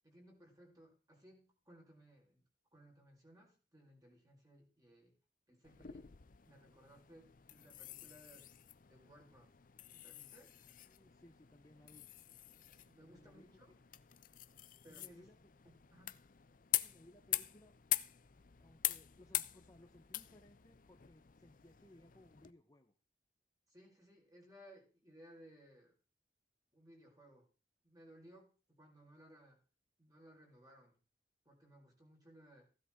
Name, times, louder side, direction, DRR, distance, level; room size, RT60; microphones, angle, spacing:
voice 1, 0.0-2.4 2.7-5.1 5.5-6.1 6.4-8.5 8.9-9.5 9.9-10.5 12.9-13.7 14.8-15.3 15.6-16.2 23.7-25.9 26.7-27.5 27.8-29.6 30.0-31.0 31.4-32.7, equal, 20° right, -1 dB, 4.7 m, -61 dB
sound 1, 5.6-22.5, left 14 dB, 50° left, 0.6 m, -44 dB
voice 2, 10.8-12.1 13.0-13.8 14.9-15.4 16.8-17.7 18.6-22.9, left 1 dB, 20° left, 3 dB, 1.1 m, -63 dB
16.0 x 11.0 x 3.7 m, 0.36 s
head